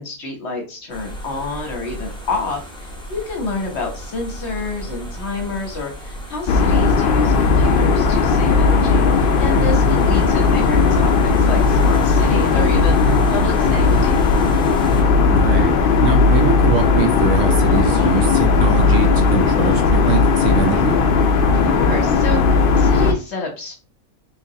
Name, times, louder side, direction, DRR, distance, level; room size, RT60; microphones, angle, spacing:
voice 1, 0.0-14.2 21.5-23.7, left 3 dB, 55° left, 1.0 m, -28 dB
sound 1, 0.9-15.0, equal, 5° left, 0.4 m, -34 dB
sound 2, 6.5-23.1, left 4 dB, 70° left, 0.5 m, -16 dB
voice 2, 15.3-21.0, right 5 dB, 65° right, 0.9 m, -23 dB
3.7 x 2.8 x 2.7 m
omnidirectional pair, 1.5 m